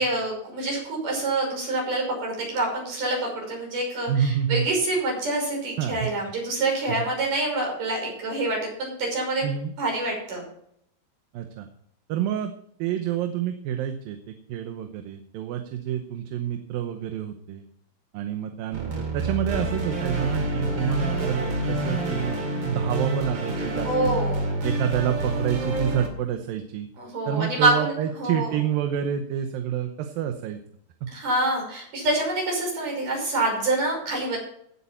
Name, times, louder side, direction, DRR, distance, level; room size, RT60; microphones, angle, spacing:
voice 1, 0.0-9.4 9.8-10.4 23.8-24.5 27.0-27.9 28.2-28.6 31.1-34.4, right 2 dB, 65° right, -1 dB, 7.3 m, -26 dB
voice 2, 4.1-4.7 5.8-6.1 7.0-7.1 9.4-9.7 11.3-11.7 12.1-12.5 12.8-17.7 18.1-22.4 22.6-24.2 24.6-26.9 27.3-30.6 31.0-31.1, right 9 dB, 85° right, 6 dB, 2.7 m, -28 dB
sound 1, 18.7-26.1, right 1 dB, 35° right, 2.9 m, -28 dB
16.5 x 8.5 x 4.4 m, 0.69 s
omnidirectional pair, 4.0 m